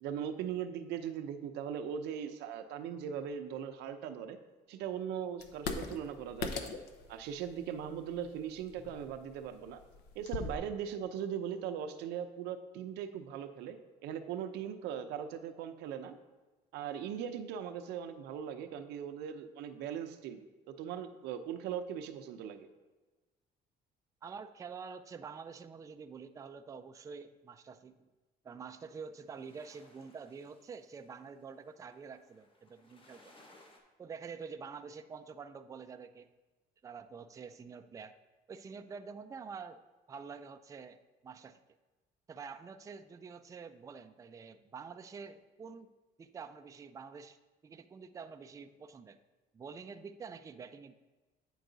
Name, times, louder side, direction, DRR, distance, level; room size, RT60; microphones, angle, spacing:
voice 1, 0.0-4.4 4.7-6.7 7.1-9.8 10.1-13.8 14.0-16.2 16.7-22.7, right 8 dB, 90° right, 8 dB, 0.6 m, -39 dB
sound 1, 5.4-10.6, left 4 dB, 80° left, 0.7 m, -42 dB
voice 2, 24.2-28.0 28.4-33.4 34.0-36.3 36.8-38.1 38.5-39.8 40.1-41.6 42.3-45.9 46.2-47.4 47.6-49.2 49.5-50.9, right 5 dB, 20° right, 9 dB, 0.3 m, -47 dB
sound 2, 28.7-33.8, left 2 dB, 30° left, 1.2 m, -63 dB
9.1 x 4.6 x 3.9 m, 1.2 s
cardioid pair, 110°, 17 cm